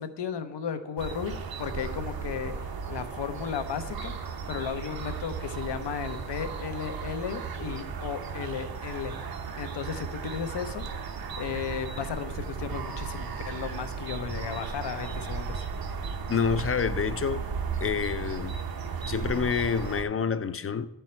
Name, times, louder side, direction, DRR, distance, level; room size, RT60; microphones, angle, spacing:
voice 1, 0.0-1.3 1.6-4.1 4.5-9.2 9.6-10.9 11.4-15.6, left 7 dB, 80° left, 0.8 m, -34 dB
sound 1, 1.0-20.0, right 5 dB, 60° right, 0.8 m, -35 dB
voice 2, 16.3-17.4 17.8-18.6 19.0-20.9, left 6 dB, 35° left, 0.4 m, -28 dB
10.5 x 4.5 x 4.4 m
cardioid pair, 65°, 41 cm